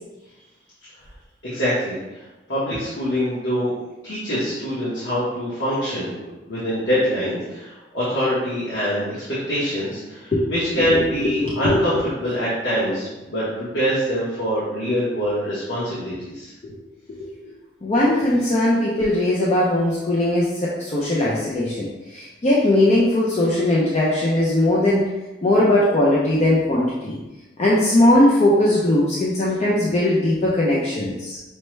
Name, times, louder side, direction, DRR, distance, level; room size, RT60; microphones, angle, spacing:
voice 1, 1.4-2.2 2.5-3.7 4.0-16.5, equal, 80° left, -10 dB, 1.1 m, -24 dB
voice 2, 11.4-11.8 16.6-16.7 17.2-17.3 17.8-25.1 25.4-27.2 27.6-31.4, left 1 dB, 35° left, -5 dB, 0.5 m, -19 dB
5.4 x 2.1 x 3.1 m, 1.1 s
head